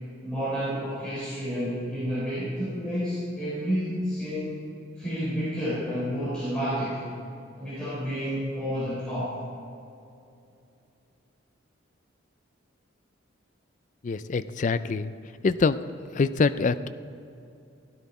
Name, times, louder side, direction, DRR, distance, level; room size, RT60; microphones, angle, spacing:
voice 1, 0.2-4.7 5.0-7.0 7.6-9.4, equal, 5° left, -12 dB, 3.6 m, -30 dB
voice 2, 14.0-15.1 15.4-15.8 16.1-16.9, left 4 dB, 40° left, 13 dB, 0.3 m, -24 dB
16.0 x 10.5 x 4.2 m, 2.7 s
head